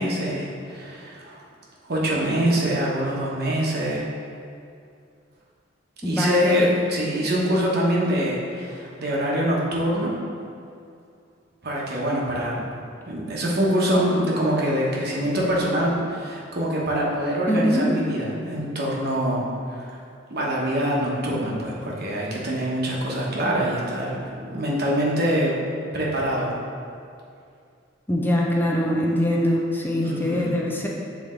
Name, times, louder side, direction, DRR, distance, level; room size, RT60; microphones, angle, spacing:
voice 1, 0.0-1.4 1.8-4.0 6.0-10.1 11.6-12.6 13.1-19.4 19.7-20.0 20.3-25.5 25.9-26.5 30.0-30.5, equal, 55° right, -4 dB, 1.0 m, -24 dB
voice 2, 6.0-6.6 17.5-17.9 28.1-30.9, left 1 dB, 10° left, -2 dB, 0.6 m, -23 dB
7.4 x 3.4 x 3.7 m, 2.4 s
head